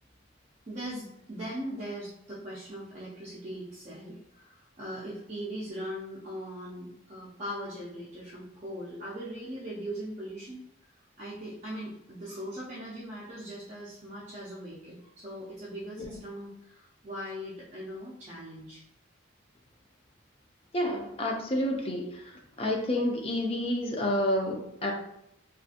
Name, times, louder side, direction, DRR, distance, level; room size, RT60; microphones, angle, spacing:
voice 1, 0.7-10.6 11.2-18.8, equal, 35° right, -7 dB, 0.5 m, -40 dB
voice 2, 20.7-24.9, left 1 dB, 30° left, 0 dB, 0.4 m, -29 dB
2.6 x 2.4 x 2.5 m, 0.80 s
head